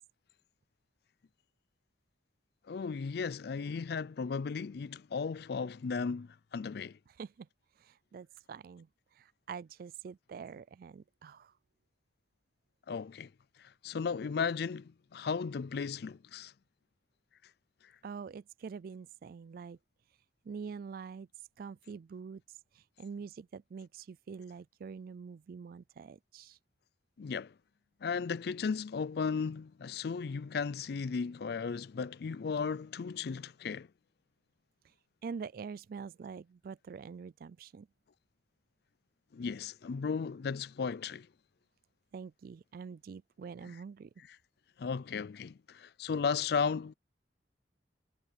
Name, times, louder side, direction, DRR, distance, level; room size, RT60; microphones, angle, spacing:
voice 1, 2.7-7.0 12.9-13.3 13.6-16.5 27.2-27.5 28.0-33.9 39.3-41.3 43.6-43.7 44.8-46.9, left 5 dB, 60° left, 0.4 m, -35 dB
voice 2, 7.8-8.9 9.2-11.5 18.0-19.8 20.4-21.3 21.6-22.4 22.8-26.6 35.2-37.9 42.1-44.1, right 5 dB, 55° right, 0.3 m, -45 dB
head